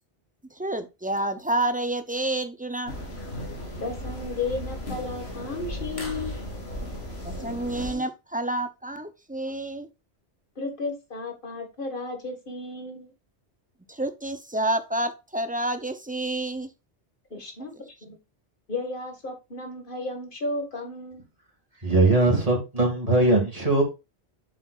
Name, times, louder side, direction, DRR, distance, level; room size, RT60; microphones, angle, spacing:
voice 1, 0.6-2.9 7.2-9.9 13.9-16.7, right 1 dB, 10° right, 0.4 m, -29 dB
sound 1, 2.9-7.9, left 1 dB, 65° left, 2.1 m, -35 dB
voice 2, 3.8-6.4 10.6-13.1 17.3-17.7 18.0-18.2 18.7-21.2, left 3 dB, 50° left, 1.9 m, -33 dB
voice 3, 21.8-23.8, right 2 dB, 35° right, 2.3 m, -20 dB
7.5 x 6.5 x 2.4 m
omnidirectional pair, 1.1 m